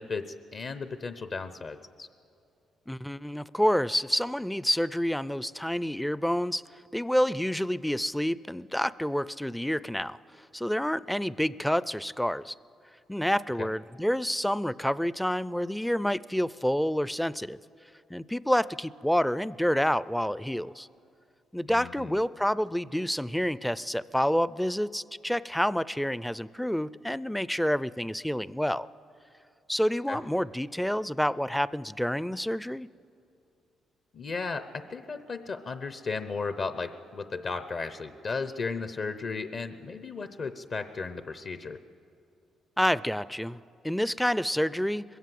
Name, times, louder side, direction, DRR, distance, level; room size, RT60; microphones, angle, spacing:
voice 1, 0.0-2.1 13.6-13.7 21.7-22.3 30.1-30.2 34.1-41.8, left 4 dB, 50° left, 11 dB, 0.7 m, -35 dB
voice 2, 2.9-6.6 6.9-10.2 10.5-12.5 13.1-17.6 18.1-20.9 21.5-28.9 29.7-32.9 42.8-45.0, equal, 5° left, 19 dB, 0.4 m, -28 dB
21.0 x 16.0 x 7.6 m, 2.6 s
cardioid pair, 90°, 0 cm